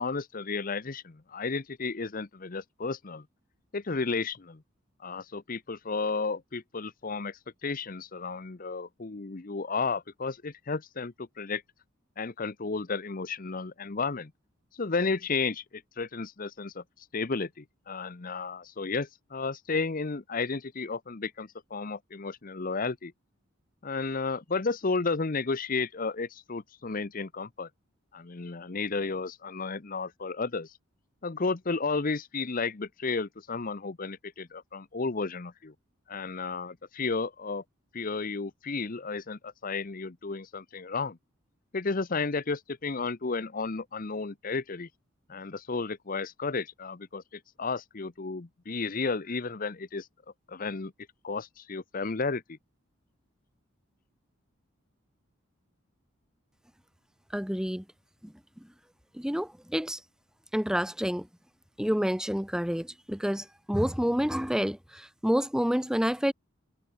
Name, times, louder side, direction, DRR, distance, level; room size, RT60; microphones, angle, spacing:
voice 1, 0.0-3.2 3.7-4.6 5.0-11.6 12.2-14.3 14.7-23.1 23.8-27.7 28.1-30.8 31.2-35.7 36.1-37.6 37.9-41.2 41.7-44.9 45.3-50.1 50.5-50.9 51.2-52.6, left 4 dB, 45° left, 0.8 m, -33 dB
voice 2, 57.3-57.8 58.2-58.3 59.1-60.0 60.5-61.3 61.8-66.3, equal, 5° right, 0.9 m, -28 dB
head